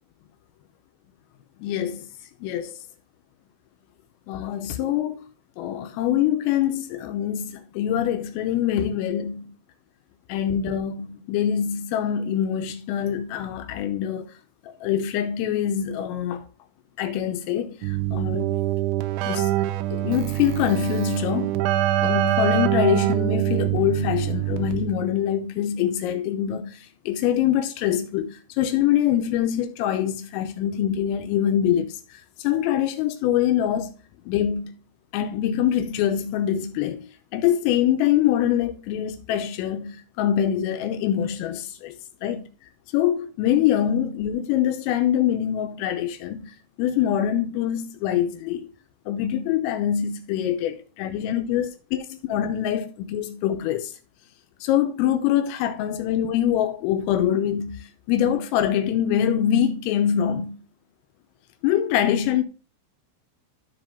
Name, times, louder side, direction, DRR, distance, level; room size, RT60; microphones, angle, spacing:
voice 1, 1.6-2.1 2.4-2.8 4.3-5.3 5.6-9.4 10.3-14.3 14.6-16.4 17.0-18.5 19.2-19.5 19.9-21.6 22.0-33.9 34.3-34.7 35.1-42.0 42.2-42.4 42.9-48.7 49.1-53.9 54.6-60.5 61.6-62.4, left 10 dB, 85° left, 3.4 m, -24 dB
Keyboard (musical), 17.8-25.1, right 14 dB, 85° right, 2.7 m, -24 dB
13.5 x 5.2 x 3.5 m
omnidirectional pair, 6.0 m